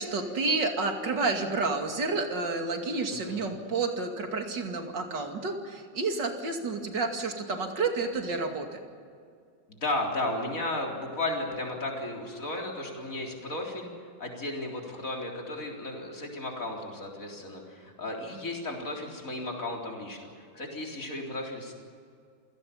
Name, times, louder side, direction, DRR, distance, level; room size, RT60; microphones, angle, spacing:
voice 1, 0.0-8.8, right 3 dB, 70° right, 4 dB, 3.1 m, -30 dB
voice 2, 3.1-3.5 9.7-21.7, left 2 dB, 45° left, 0 dB, 4.3 m, -34 dB
27.5 x 17.0 x 7.2 m, 2.3 s
omnidirectional pair, 2.0 m